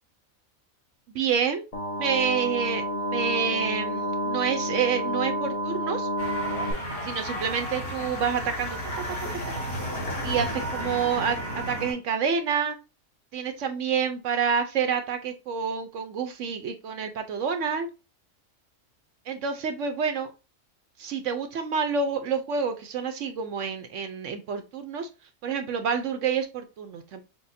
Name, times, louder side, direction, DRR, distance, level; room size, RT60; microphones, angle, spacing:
voice 1, 1.1-1.6 2.0-2.8 3.1-6.1 7.0-9.0 10.2-12.8 13.3-17.9 19.3-20.3 21.0-25.1 25.4-27.2, right 6 dB, 65° right, 7 dB, 0.9 m, -28 dB
sound 1, 1.7-6.7, equal, 30° left, 0.8 m, -29 dB
sound 2, 6.2-11.9, equal, 70° left, 2.5 m, -32 dB
6.1 x 2.1 x 2.6 m, 0.30 s
omnidirectional pair, 1.5 m